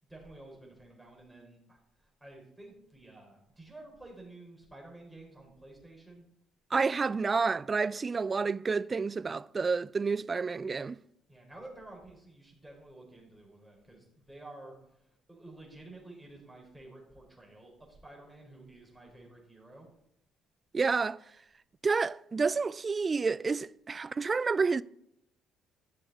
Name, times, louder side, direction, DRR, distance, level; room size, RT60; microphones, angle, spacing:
voice 1, 0.0-6.2 11.3-19.9, right 2 dB, 10° right, 4.1 m, -51 dB
voice 2, 6.7-11.0 20.7-21.2 21.8-24.8, right 4 dB, 30° right, 0.3 m, -29 dB
12.0 x 6.5 x 4.3 m
figure-of-eight pair, 45°, 0 cm